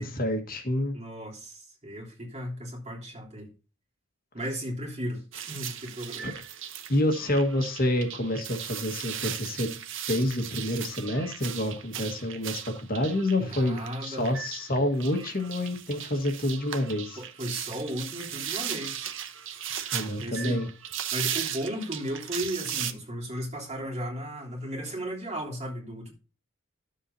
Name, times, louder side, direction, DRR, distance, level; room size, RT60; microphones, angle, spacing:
voice 1, 0.0-0.9 6.2-6.3 6.9-9.8 10.1-17.2 19.9-20.7, left 1 dB, 45° left, 1.5 m, -28 dB
voice 2, 0.9-3.5 4.3-6.3 13.4-14.3 17.2-19.1 20.2-20.6 21.1-26.1, equal, 35° right, 3.2 m, -35 dB
sound 1, 5.3-22.9, right 9 dB, 65° right, 0.9 m, -37 dB
12.5 x 7.4 x 2.7 m
head